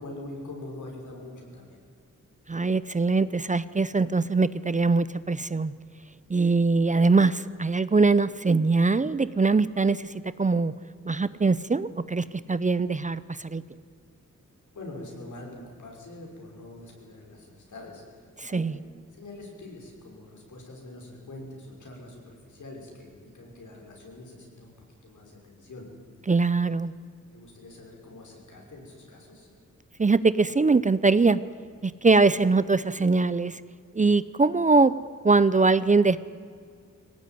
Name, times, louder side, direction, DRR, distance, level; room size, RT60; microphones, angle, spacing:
voice 1, 0.0-1.8 14.7-18.0 18.5-18.8 19.2-24.7 25.0-25.9 27.3-29.5, left 2 dB, 75° left, 0 dB, 6.1 m, -44 dB
voice 2, 2.5-5.7 6.3-10.1 10.4-10.7 11.1-13.6 18.4-18.8 26.3-26.9 30.0-31.4 31.8-33.6 33.9-34.9 35.2-36.2, right 3 dB, 25° right, 16 dB, 0.6 m, -22 dB
23.0 x 18.0 x 9.4 m, 2.2 s
wide cardioid pair, 120°, 30 cm